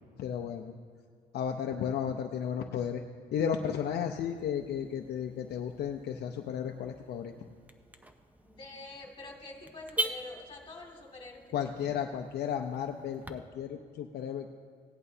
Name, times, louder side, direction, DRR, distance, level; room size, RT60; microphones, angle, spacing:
voice 1, 0.2-0.7 1.3-3.0 3.3-7.3 11.5-14.5, left 8 dB, 65° left, 3 dB, 0.7 m, -34 dB
Car / Alarm, 4.2-13.3, right 1 dB, 10° right, 0.6 m, -43 dB
voice 2, 8.4-11.4 11.8-11.9, left 2 dB, 30° left, -1 dB, 2.4 m, -46 dB
17.5 x 11.0 x 2.8 m, 2.1 s
cardioid pair, 110°, 18 cm